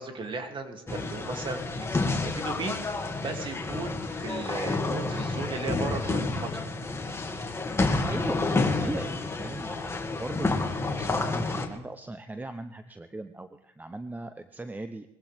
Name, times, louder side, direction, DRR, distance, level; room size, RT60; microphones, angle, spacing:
voice 1, 0.0-6.6, right 3 dB, 35° right, 4 dB, 2.8 m, -36 dB
sound 1, 0.9-11.7, left 3 dB, 20° left, 2.3 m, -29 dB
voice 2, 7.9-10.6 10.9-15.1, right 2 dB, 10° right, 10 dB, 0.8 m, -38 dB
21.0 x 16.0 x 3.6 m, 0.93 s
supercardioid pair, 85°, 14 cm